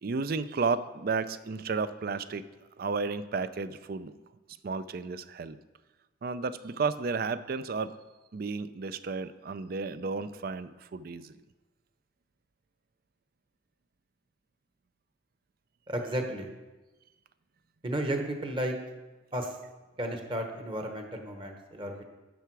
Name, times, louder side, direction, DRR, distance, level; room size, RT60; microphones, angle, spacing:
voice 1, 0.0-2.5 2.8-4.1 4.6-5.6 6.2-7.9 8.3-11.3, right 4 dB, 50° right, 14 dB, 0.4 m, -32 dB
voice 2, 15.9-16.5 17.8-18.8 19.3-19.6 20.0-22.0, right 1 dB, 25° right, 4 dB, 1.1 m, -33 dB
10.5 x 6.8 x 4.7 m, 1.1 s
head